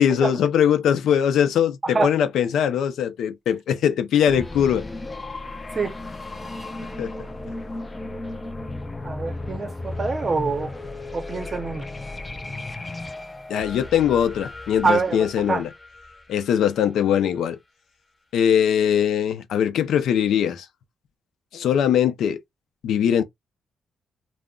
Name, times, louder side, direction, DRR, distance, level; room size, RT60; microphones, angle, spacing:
voice 1, 0.0-4.9 7.0-7.1 13.5-15.7 16.3-17.6 18.3-20.7 21.5-22.4 22.8-23.2, left 9 dB, 75° left, 0.4 m, -21 dB
sound 1, 4.3-17.0, left 2 dB, 15° left, 0.4 m, -35 dB
voice 2, 9.0-10.8 11.1-11.9 14.8-15.6, right 4 dB, 30° right, 0.6 m, -25 dB
2.2 x 2.0 x 3.6 m
cardioid pair, 140°, 0 cm